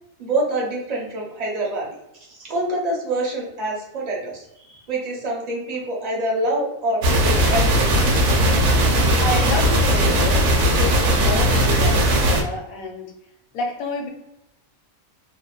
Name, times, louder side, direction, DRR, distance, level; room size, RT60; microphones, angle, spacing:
voice 1, 0.2-1.9 2.3-7.9, right 1 dB, 50° right, -3 dB, 0.4 m, -26 dB
sound 1, 7.0-12.4, equal, 70° right, 0.8 m, -18 dB
voice 2, 8.3-13.1 13.5-14.1, left 2 dB, 75° left, 0 dB, 1.1 m, -29 dB
2.7 x 2.1 x 2.3 m, 0.84 s
omnidirectional pair, 1.5 m